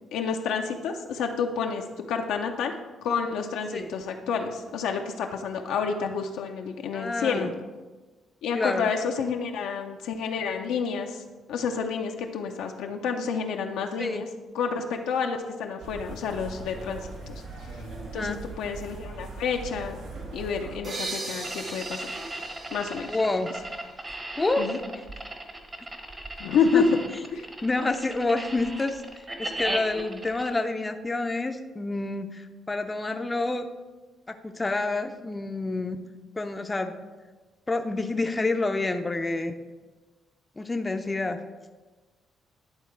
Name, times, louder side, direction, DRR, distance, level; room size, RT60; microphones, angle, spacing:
voice 1, 0.1-2.8 3.0-7.5 8.4-11.2 11.5-14.3 14.5-17.0 17.3-17.4 18.1-20.0 20.3-22.2 22.7-23.2 24.6-24.8 26.4-27.0 27.3-27.4, left 6 dB, 85° left, 3 dB, 0.6 m, -29 dB
voice 2, 6.9-7.5 8.5-8.9 14.0-14.2 18.1-18.4 23.1-23.5 24.4-24.7 26.7-26.8 27.6-29.0 29.4-33.7 34.3-36.0 36.4-36.9 37.7-39.5 40.6-41.4, left 2 dB, 20° left, 6 dB, 0.5 m, -28 dB
sound 1, 15.8-20.8, right 3 dB, 85° right, 1.6 m, -40 dB
sound 2, 20.8-24.4, right 2 dB, 50° right, 2.1 m, -39 dB
sound 3, 21.4-30.5, right 1 dB, 25° right, 1.0 m, -37 dB
10.5 x 3.7 x 4.5 m, 1.3 s
cardioid pair, 90°, 0 cm